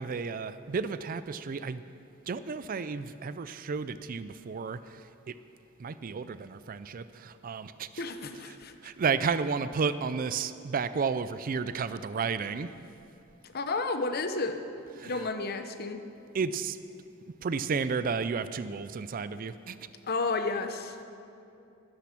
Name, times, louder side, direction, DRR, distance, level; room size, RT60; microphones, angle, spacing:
voice 1, 0.0-1.8 2.3-5.4 5.8-8.0 8.5-8.6 8.8-12.7 15.0-15.3 16.3-16.8 17.4-19.8, right 5 dB, 45° right, 13 dB, 0.4 m, -32 dB
voice 2, 8.0-8.7 13.5-14.6 15.0-16.0 20.0-21.0, left 3 dB, 50° left, 8 dB, 0.8 m, -32 dB
12.0 x 12.0 x 6.0 m, 2.7 s
head